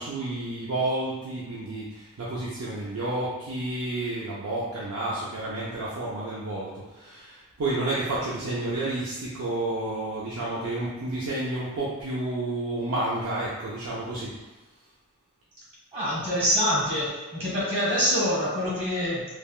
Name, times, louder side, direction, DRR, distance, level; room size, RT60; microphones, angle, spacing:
voice 1, 0.0-14.3, right 2 dB, 70° right, -7 dB, 0.5 m, -30 dB
voice 2, 15.9-19.3, equal, 30° right, -8 dB, 1.2 m, -25 dB
3.3 x 2.2 x 2.3 m, 1.2 s
head